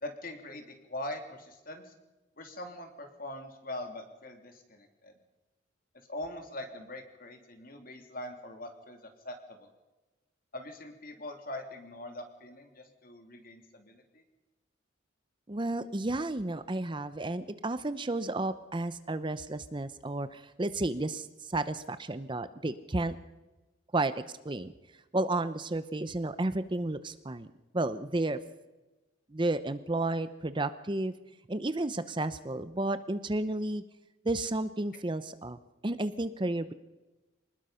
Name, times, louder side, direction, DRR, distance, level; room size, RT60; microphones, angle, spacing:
voice 1, 0.0-1.9 2.4-5.1 6.1-9.0 9.2-9.7 10.5-14.2, left 1 dB, 50° left, 5 dB, 3.1 m, -42 dB
voice 2, 15.5-23.2 23.9-24.1 24.4-24.7 25.1-27.5 27.7-28.4 29.3-31.1 31.5-33.8 34.2-36.7, right 2 dB, 25° right, 12 dB, 0.7 m, -32 dB
26.0 x 20.0 x 5.7 m, 1.1 s
head